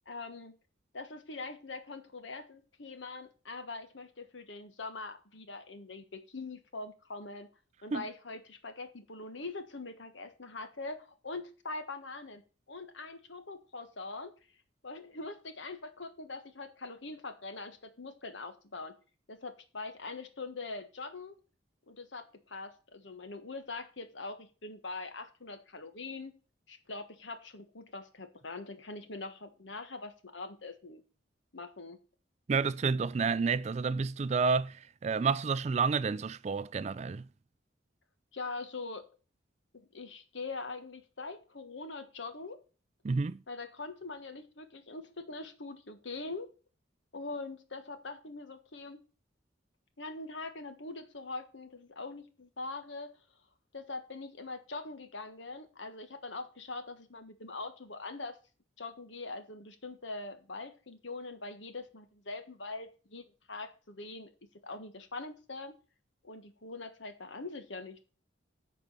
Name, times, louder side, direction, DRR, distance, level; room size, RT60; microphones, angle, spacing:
voice 1, 0.0-0.6 0.9-7.5 7.8-12.4 12.7-14.3 14.8-19.0 19.3-21.4 21.9-26.3 26.7-31.0 31.5-32.0 38.3-39.0 39.7-42.6 43.5-46.5 47.1-49.0 50.0-53.2 53.7-58.4 58.8-64.3 64.6-65.7 66.2-68.0, left 3 dB, 70° left, 1.4 m, -43 dB
voice 2, 32.5-37.3 43.0-43.4, right 5 dB, 35° right, 0.3 m, -30 dB
9.1 x 4.7 x 6.7 m
head